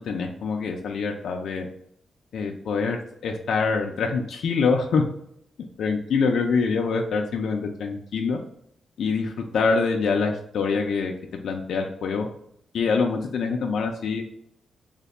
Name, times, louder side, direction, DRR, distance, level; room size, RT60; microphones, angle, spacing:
voice 1, 0.0-1.7 2.3-5.0 5.8-8.4 9.0-11.1 11.4-12.3 12.7-14.2, left 4 dB, 70° left, 1 dB, 0.3 m, -25 dB
3.2 x 2.1 x 3.9 m, 0.71 s
wide cardioid pair, 175°, 0 cm